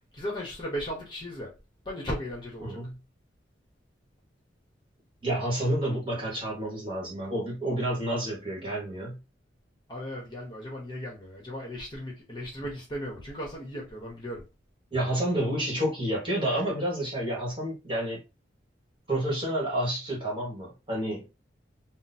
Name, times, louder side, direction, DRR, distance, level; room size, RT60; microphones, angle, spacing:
voice 1, 0.1-1.5 1.8-2.8 9.9-14.4, equal, 25° left, 1.0 m, -36 dB
voice 2, 2.6-2.9 5.2-9.2 14.9-18.2 19.1-21.3, right 1 dB, 25° right, 1.4 m, -29 dB
3.0 x 2.0 x 4.1 m
head